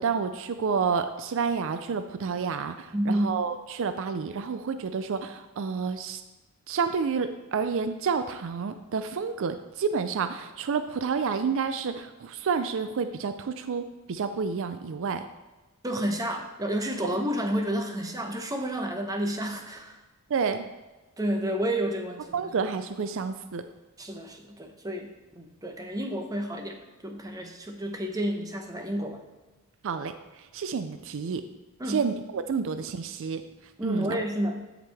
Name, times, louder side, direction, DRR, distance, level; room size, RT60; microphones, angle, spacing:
voice 1, 0.0-6.2 6.7-15.2 20.3-20.6 22.3-23.6 29.8-30.1 30.5-31.4 31.9-33.4 33.8-34.2, right 5 dB, 60° right, 10 dB, 0.4 m, -29 dB
voice 2, 2.9-3.4 15.8-20.0 21.2-22.3 24.0-29.2 31.8-32.0 33.8-34.6, equal, 15° right, 4 dB, 0.8 m, -30 dB
13.0 x 5.0 x 3.4 m, 1.2 s
head